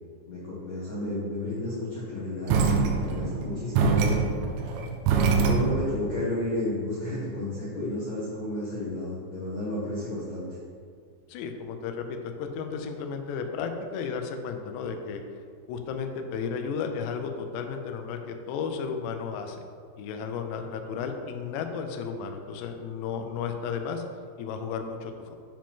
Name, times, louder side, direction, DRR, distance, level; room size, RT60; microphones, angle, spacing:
voice 1, 0.3-4.2 5.3-10.5, left 1 dB, 70° left, -10 dB, 1.7 m, -32 dB
sound 1, 2.5-6.0, right 5 dB, 85° right, 3.0 m, -24 dB
voice 2, 11.3-15.2 15.7-19.6 20.0-24.0 24.4-25.4, left 6 dB, 85° left, 5 dB, 2.4 m, -33 dB
8.8 x 5.1 x 3.7 m, 2.1 s
omnidirectional pair, 5.6 m